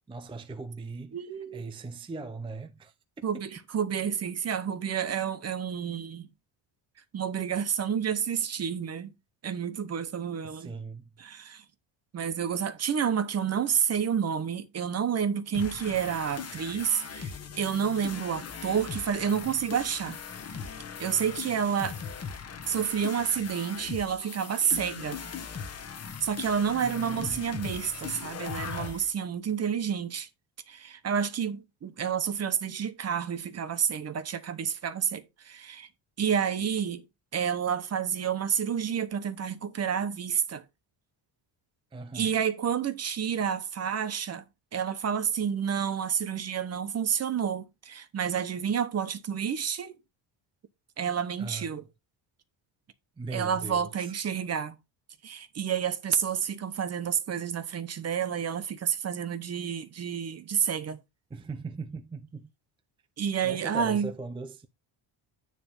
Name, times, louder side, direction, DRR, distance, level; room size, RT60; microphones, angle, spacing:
voice 1, 0.1-1.2 1.5-2.9 10.4-11.0 26.8-27.5 41.9-42.4 51.4-51.7 53.2-54.1 61.3-62.5 63.4-64.7, right 3 dB, 10° right, 0.6 m, -39 dB
voice 2, 1.1-1.7 3.2-6.3 7.1-9.1 9.4-10.7 11.2-11.6 12.1-20.2 21.0-22.0 22.7-25.2 26.2-30.3 30.7-35.9 36.2-37.0 37.3-40.6 42.1-44.4 44.7-49.9 51.0-51.8 53.3-54.8 55.2-61.0 63.2-64.1, right 7 dB, 35° right, 0.9 m, -29 dB
sound 1, 15.5-29.1, left 6 dB, 30° left, 1.3 m, -39 dB
9.8 x 3.4 x 5.3 m
cardioid pair, 165°, 46 cm